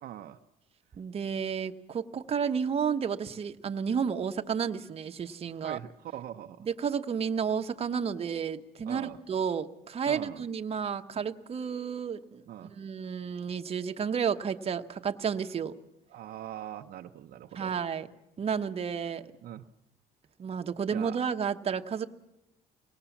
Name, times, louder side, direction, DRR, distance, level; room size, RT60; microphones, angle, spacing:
voice 1, 0.0-0.4 5.6-6.6 8.8-9.2 10.0-10.4 12.5-12.7 16.1-17.8 19.4-19.7 20.9-21.2, right 11 dB, 60° right, 4 dB, 0.8 m, -42 dB
voice 2, 1.0-5.8 6.6-15.7 17.5-18.1 18.4-19.3 20.4-22.1, right 7 dB, 35° right, 6 dB, 1.1 m, -31 dB
25.5 x 18.5 x 7.2 m, 0.88 s
cardioid pair, 110°, 17 cm